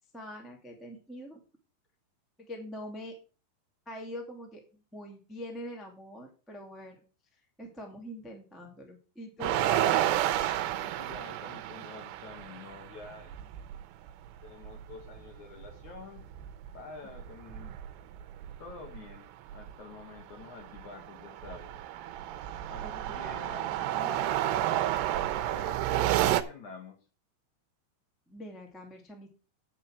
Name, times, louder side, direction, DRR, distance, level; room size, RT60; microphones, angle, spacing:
voice 1, 0.1-1.4 2.4-3.1 3.8-7.0 7.3-9.5 22.8-23.6 28.3-29.3, equal, ahead, 1 dB, 0.7 m, -44 dB
sound 1, 9.4-13.8 14.1-14.2 14.5-16.8 17.1-19.0 19.5-19.7 20.2-26.4, right 12 dB, 85° right, 2.8 m, -31 dB
voice 2, 10.8-13.4 14.4-16.2 16.7-17.8 18.6-21.7 22.7-24.4 25.5-27.0, left 4 dB, 60° left, 3 dB, 2.2 m, -48 dB
9.5 x 5.6 x 6.1 m, 0.35 s
omnidirectional pair, 4.8 m